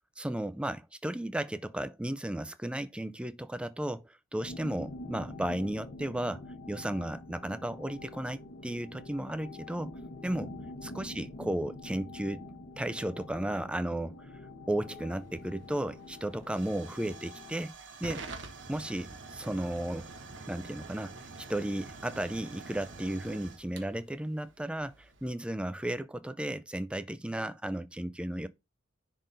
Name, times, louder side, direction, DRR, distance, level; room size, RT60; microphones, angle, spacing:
voice 1, 0.2-10.5 10.8-12.4 12.8-14.3 14.7-17.7 18.0-18.3 18.7-20.1 20.5-21.1 21.5-28.5, right 1 dB, 5° right, 0.3 m, -34 dB
sound 1, 4.4-17.7, left 2 dB, 70° left, 1.2 m, -46 dB
Hiss / Fire / Tick, 14.9-25.3, right 3 dB, 65° right, 1.1 m, -47 dB
10.5 x 3.7 x 2.6 m
head